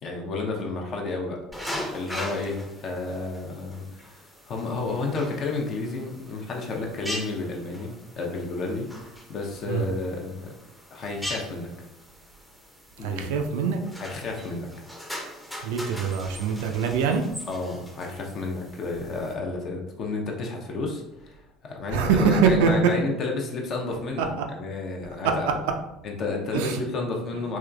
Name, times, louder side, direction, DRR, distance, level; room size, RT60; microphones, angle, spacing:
voice 1, 0.0-10.5 10.9-11.7 13.0-13.3 14.0-14.7 17.5-25.6 26.0-27.6, left 3 dB, 45° left, 0 dB, 0.7 m, -31 dB
sound 1, 1.5-19.3, left 1 dB, 5° left, 0.6 m, -40 dB
voice 2, 13.0-13.8 15.6-17.3 21.9-22.9 24.2-24.4 25.2-25.5 26.5-26.8, right 6 dB, 65° right, 4 dB, 0.3 m, -23 dB
3.5 x 2.9 x 2.3 m, 0.90 s
figure-of-eight pair, 60°, 0 cm